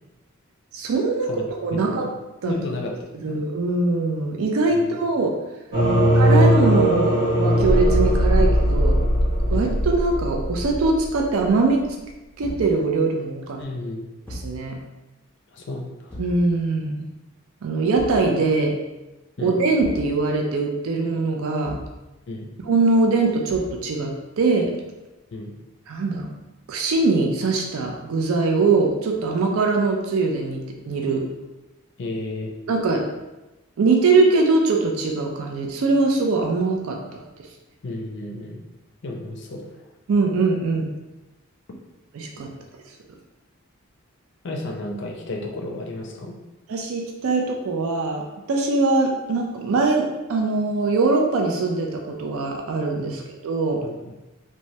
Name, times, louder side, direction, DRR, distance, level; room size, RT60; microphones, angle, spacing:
voice 1, 0.7-2.1 2.4-2.5 3.2-5.4 6.1-9.0 9.5-11.8 12.4-13.6 14.3-14.8 16.2-17.0 17.6-18.8 19.4-21.8 22.6-24.7 25.9-26.3 26.7-31.3 32.7-33.1 33.8-37.2 40.1-40.9 42.1-42.5 46.7-53.8, right 3 dB, 75° right, 1 dB, 0.4 m, -22 dB
voice 2, 2.4-2.9 3.3-3.4 4.7-5.0 5.9-6.1 9.5-9.7 13.6-14.1 15.5-16.1 19.4-19.6 22.3-22.5 25.3-25.5 32.0-32.5 37.8-38.6 39.0-39.6 44.4-46.3 53.8-53.9, left 2 dB, 50° left, 1 dB, 0.4 m, -32 dB
sound 1, 5.7-11.4, equal, 50° right, 0.8 m, -19 dB
Thump thud, 10.6-10.9 12.4-12.8 14.2-14.6 16.1-16.4 17.9-18.3 19.8-20.1 21.6-22.0 23.5-23.8, equal, 10° left, 0.6 m, -36 dB
3.1 x 2.2 x 2.7 m, 1.0 s
head